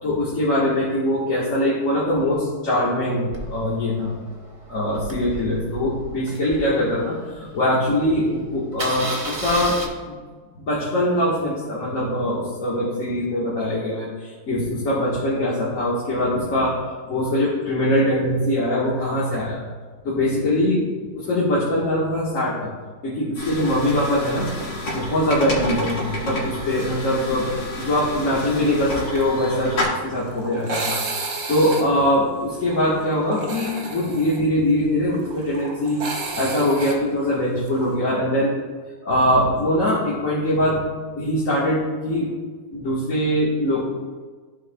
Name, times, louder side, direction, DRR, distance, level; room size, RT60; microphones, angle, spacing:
voice 1, 0.0-4.2 4.7-9.8 10.0-10.2 10.5-16.8 17.1-19.6 20.0-20.9 21.1-22.7 23.0-24.5 24.9-38.5 39.0-40.8 41.1-42.3 42.7-43.8, left 1 dB, 50° left, -7 dB, 1.7 m, -22 dB
Engine starting, 3.3-7.5 8.0-8.1 8.3-8.4 8.7-9.9, right 2 dB, 25° right, 0.7 m, -32 dB
sound 1, 23.4-29.8, left 1 dB, 80° left, 2.5 m, -30 dB
sound 2, 24.0-24.3 24.6-24.7 25.9-26.1 29.2-38.0, right 3 dB, 55° right, 1.4 m, -33 dB
14.0 x 4.9 x 2.2 m, 1.4 s
omnidirectional pair, 1.9 m